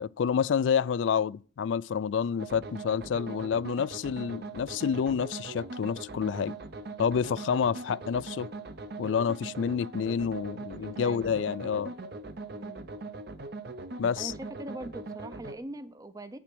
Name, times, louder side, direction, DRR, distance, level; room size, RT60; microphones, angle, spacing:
voice 1, 0.0-6.5 7.0-8.5 9.0-11.9 14.0-14.3, left 7 dB, 85° left, 0.3 m, -28 dB
sound 1, 2.4-15.6, right 3 dB, 60° right, 0.8 m, -41 dB
voice 2, 10.7-12.0 12.5-12.9 14.2-16.4, right 1 dB, 20° right, 0.5 m, -43 dB
8.5 x 5.9 x 6.1 m
head